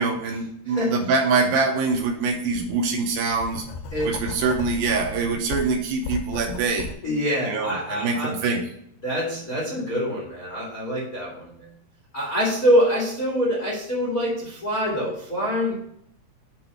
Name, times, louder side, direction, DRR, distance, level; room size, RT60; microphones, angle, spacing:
voice 1, 0.0-3.6 4.0-6.9 7.5-8.6, right 4 dB, 75° right, 3 dB, 2.3 m, -24 dB
voice 2, 0.6-1.0 3.9-4.2 7.0-8.4 9.0-11.7 12.1-15.7, equal, 65° left, -6 dB, 0.8 m, -25 dB
Writing, 1.9-2.1 2.5-6.9, left 4 dB, 85° left, 2.6 m, -35 dB
8.8 x 3.1 x 5.6 m, 0.71 s
omnidirectional pair, 4.7 m